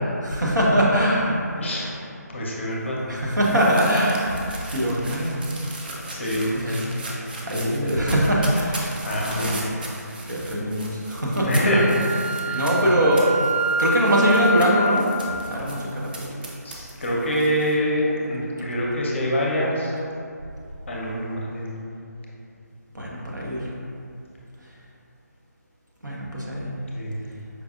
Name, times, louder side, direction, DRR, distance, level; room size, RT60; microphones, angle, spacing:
voice 1, 0.2-1.3 3.1-5.4 6.3-6.9 7.4-9.5 10.3-11.7 12.5-13.3 13.8-15.1 15.5-16.3 22.9-23.7 26.0-26.8, equal, 85° right, -5 dB, 0.8 m, -22 dB
voice 2, 1.6-2.0 2.3-3.0 5.8-6.5 9.0-9.7 11.3-12.0 12.4-12.8 16.6-19.9 20.9-21.8 26.9-27.2, equal, 40° left, -4 dB, 0.6 m, -25 dB
sound 1, 2.7-17.7, right 2 dB, 30° right, 0.4 m, -38 dB
Wind instrument woodwind instrument, 11.6-15.0, right 1 dB, 65° right, 1.2 m, -26 dB
4.7 x 2.5 x 2.4 m, 2.5 s
figure-of-eight pair, 155°, 10 cm